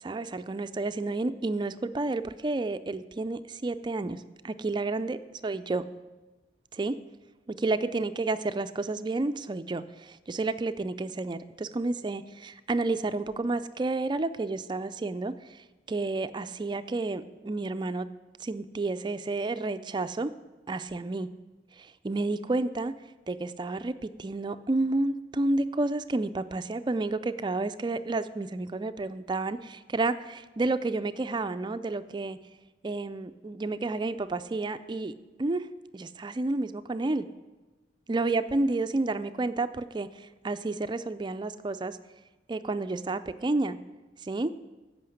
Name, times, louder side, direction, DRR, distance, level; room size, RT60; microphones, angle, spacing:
voice 1, 0.0-5.8 6.7-7.0 7.5-18.1 18.4-20.3 20.7-21.3 21.8-22.9 23.3-32.4 32.8-35.1 35.4-35.7 35.9-37.3 38.1-42.0 42.5-43.8 44.2-44.5, right 2 dB, 25° right, 12 dB, 0.4 m, -30 dB
13.5 x 5.7 x 7.7 m, 1.2 s
head